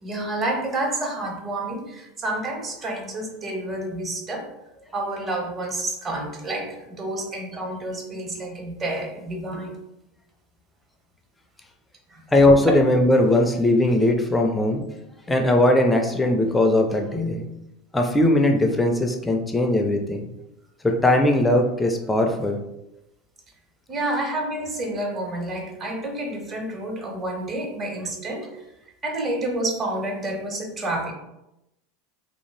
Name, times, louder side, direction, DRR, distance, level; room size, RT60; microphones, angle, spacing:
voice 1, 0.0-4.5 4.9-9.8 12.1-12.3 23.9-28.7 29.0-31.1, right 1 dB, 25° right, 2 dB, 0.6 m, -29 dB
voice 2, 12.3-14.8 15.3-17.4 17.9-20.2 20.8-22.6, left 1 dB, 10° left, 3 dB, 0.4 m, -19 dB
2.6 x 2.4 x 3.1 m, 0.88 s
supercardioid pair, 135°, 0 cm